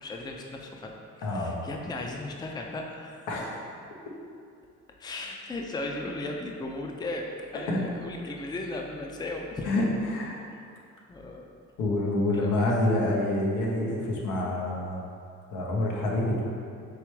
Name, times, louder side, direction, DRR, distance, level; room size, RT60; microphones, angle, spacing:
voice 1, 0.0-3.3 3.8-4.1 5.0-9.7 11.1-11.6 12.3-12.7, left 2 dB, 15° left, 1 dB, 0.4 m, -36 dB
voice 2, 1.2-1.6 3.3-3.6 7.7-7.8 9.7-10.3 11.8-15.0 15.5-16.4, left 1 dB, 85° left, -2 dB, 0.8 m, -27 dB
4.7 x 3.3 x 3.2 m, 2.4 s
cardioid pair, 90°, 30 cm